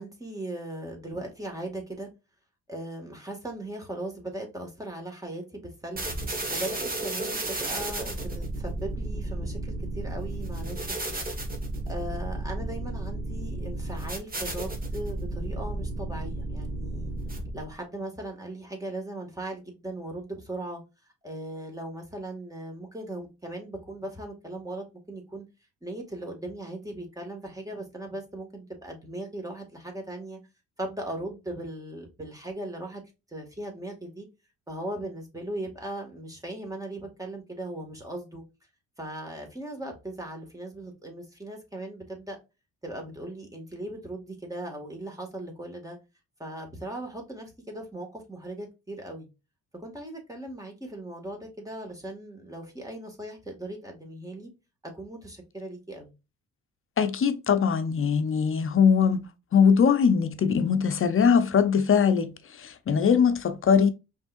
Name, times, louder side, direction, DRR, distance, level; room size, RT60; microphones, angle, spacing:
voice 1, 0.0-2.1 2.7-6.0 6.5-10.8 11.1-11.2 11.9-17.1 17.5-20.8 21.2-25.4 25.8-30.4 30.8-33.0 33.3-34.3 34.7-38.4 39.0-42.4 42.8-46.0 46.4-49.3 49.8-54.5 54.9-56.1, right 1 dB, 10° right, 2.1 m, -38 dB
sound 1, 6.0-17.8, right 2 dB, 30° right, 1.8 m, -33 dB
voice 2, 57.0-59.2 59.5-62.3 62.6-63.9, left 6 dB, 45° left, 0.8 m, -21 dB
5.3 x 3.5 x 2.6 m
cardioid pair, 90°, 30 cm